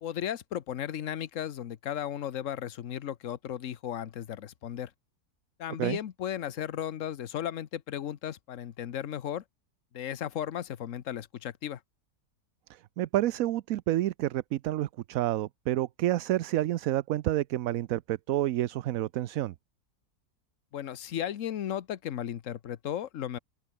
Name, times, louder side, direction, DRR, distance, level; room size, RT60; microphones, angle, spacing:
voice 1, 0.0-4.9 5.6-9.4 9.9-11.8 20.7-23.4, left 10 dB, 60° left, 1.2 m, -35 dB
voice 2, 12.7-19.5, right 14 dB, 70° right, 1.0 m, -29 dB
open air
omnidirectional pair, 1.7 m